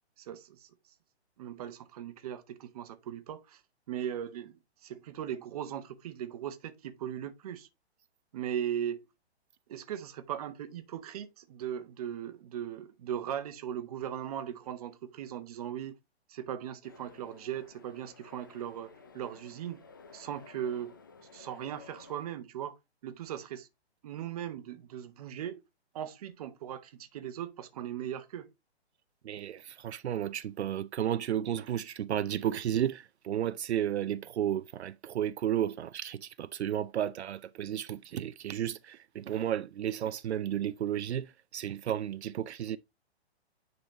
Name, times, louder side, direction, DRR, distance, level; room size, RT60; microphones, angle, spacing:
voice 1, 0.2-0.7 1.4-3.6 3.9-7.7 8.3-9.0 9.7-15.9 16.3-19.8 20.1-20.9 21.3-22.8 23.0-23.7 24.0-25.6 25.9-28.5, right 10 dB, 35° right, 0.9 m, -38 dB
sound 1, 16.8-22.3, left 4 dB, 20° left, 0.4 m, -54 dB
voice 2, 29.2-42.8, right 10 dB, 75° right, 0.5 m, -33 dB
10.0 x 4.0 x 2.9 m
hypercardioid pair, 160°, 33 cm